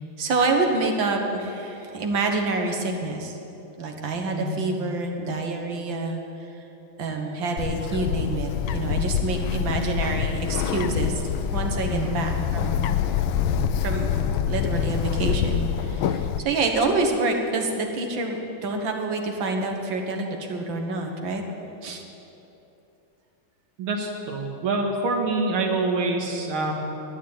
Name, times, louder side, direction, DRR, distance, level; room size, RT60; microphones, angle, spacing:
voice 1, 0.2-3.4 3.8-6.2 7.0-11.2 11.5-13.0 13.8-14.1 14.5-21.4 21.8-22.0, right 3 dB, 65° right, 3 dB, 2.1 m, -27 dB
Bird, 7.6-16.4, left 8 dB, 80° left, 1.4 m, -26 dB
voice 2, 23.8-26.7, right 3 dB, 90° right, 1 dB, 2.4 m, -26 dB
12.0 x 9.9 x 8.9 m, 2.9 s
omnidirectional pair, 2.2 m